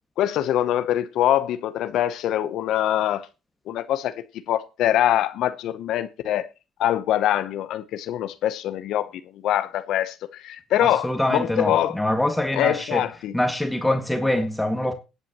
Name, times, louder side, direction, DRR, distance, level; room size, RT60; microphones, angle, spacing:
voice 1, 0.2-3.3 3.7-4.1 4.5-6.5 6.8-9.1 9.4-11.9 12.5-13.3, left 12 dB, 70° left, 0.7 m, -24 dB
voice 2, 10.8-13.0 13.3-14.9, left 1 dB, 10° left, 1.7 m, -24 dB
20.5 x 8.2 x 3.0 m
supercardioid pair, 70°, 0 cm